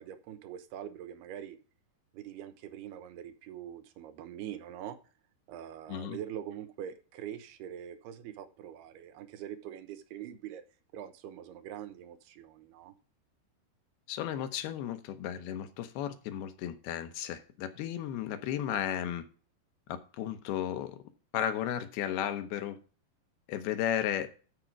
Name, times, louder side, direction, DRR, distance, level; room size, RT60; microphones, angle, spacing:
voice 1, 0.0-1.6 2.1-5.0 5.5-10.6 10.9-12.9, right 10 dB, 90° right, 9 dB, 2.9 m, -43 dB
voice 2, 14.1-19.2 19.9-21.0 21.3-22.8 23.5-24.3, left 10 dB, 80° left, 9 dB, 2.9 m, -34 dB
13.0 x 5.1 x 4.6 m, 0.38 s
omnidirectional pair, 4.6 m